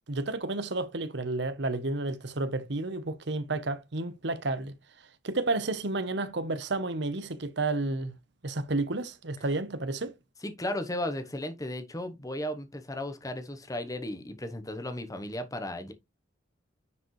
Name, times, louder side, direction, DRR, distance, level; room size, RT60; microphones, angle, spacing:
voice 1, 0.1-4.7 5.2-8.1 8.4-10.1, right 2 dB, 60° right, 0.9 m, -31 dB
voice 2, 10.4-15.9, left 1 dB, 20° left, 1.0 m, -35 dB
9.7 x 5.0 x 3.2 m
head